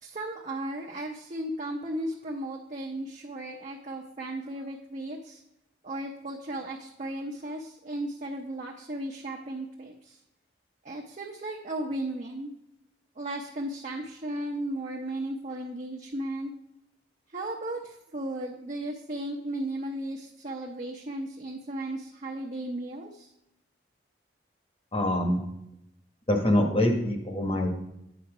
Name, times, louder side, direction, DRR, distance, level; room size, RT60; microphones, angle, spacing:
voice 1, 0.0-5.4 5.8-10.2 10.8-12.5 13.2-16.5 17.3-23.3, right 1 dB, 40° right, -1 dB, 0.7 m, -35 dB
voice 2, 24.9-25.4 26.3-27.7, left 1 dB, 30° left, 3 dB, 1.2 m, -24 dB
9.4 x 5.6 x 4.9 m, 0.84 s
head